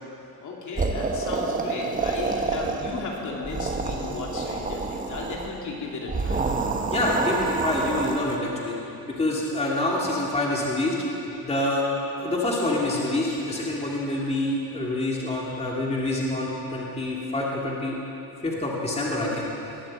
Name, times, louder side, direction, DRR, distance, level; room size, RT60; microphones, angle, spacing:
voice 1, 0.4-6.5, left 3 dB, 50° left, -2 dB, 2.5 m, -35 dB
sound 1, 0.8-3.1 3.4-5.5 6.1-8.4, right 3 dB, 20° right, 1.0 m, -28 dB
voice 2, 6.9-8.7 9.2-11.0 11.4-11.9 12.2-17.9 18.4-19.5, left 1 dB, 15° left, -3 dB, 2.2 m, -26 dB
19.5 x 7.7 x 7.5 m, 2.9 s
cardioid pair, 135°, 37 cm